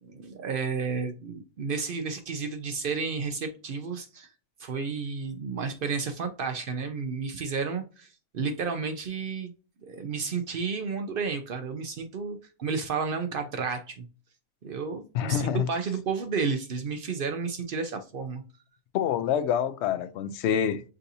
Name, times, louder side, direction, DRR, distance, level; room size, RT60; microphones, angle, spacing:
voice 1, 0.0-4.3 4.6-9.5 9.8-14.1 14.6-18.4, right 5 dB, 70° right, 0.5 m, -32 dB
voice 2, 15.1-15.7 18.9-20.8, left 9 dB, 70° left, 0.6 m, -26 dB
6.5 x 2.6 x 2.7 m
omnidirectional pair, 1.6 m